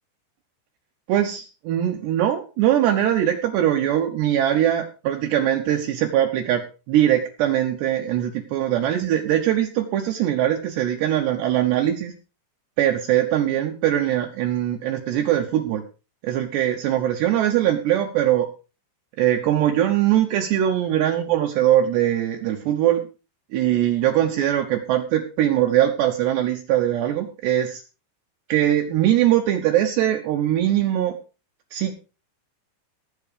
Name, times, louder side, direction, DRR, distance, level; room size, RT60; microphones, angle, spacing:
voice 1, 1.1-12.1 12.8-15.8 16.2-18.5 19.2-23.0 23.5-27.8 28.5-31.2 31.7-32.0, right 11 dB, 70° right, 4 dB, 2.9 m, -21 dB
17.0 x 8.2 x 5.0 m, 0.34 s
omnidirectional pair, 5.6 m